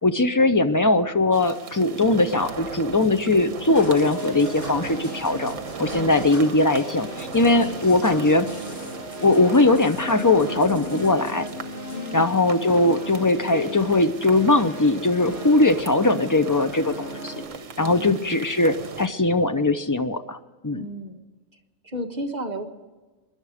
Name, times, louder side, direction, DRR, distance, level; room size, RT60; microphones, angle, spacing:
voice 1, 0.0-5.5 5.8-8.5 9.2-11.5 12.1-17.3 17.8-20.4 20.6-20.8, left 2 dB, 30° left, 9 dB, 0.3 m, -20 dB
sound 1, 1.3-19.1, right 6 dB, 65° right, 1.4 m, -38 dB
sound 2, 3.7-17.4, left 1 dB, 45° left, 5.4 m, -37 dB
voice 2, 7.5-7.8 11.9-12.4 17.8-18.3 20.7-21.2 21.8-22.7, equal, 35° right, 4 dB, 1.3 m, -33 dB
24.0 x 11.0 x 4.9 m, 1.3 s
omnidirectional pair, 1.4 m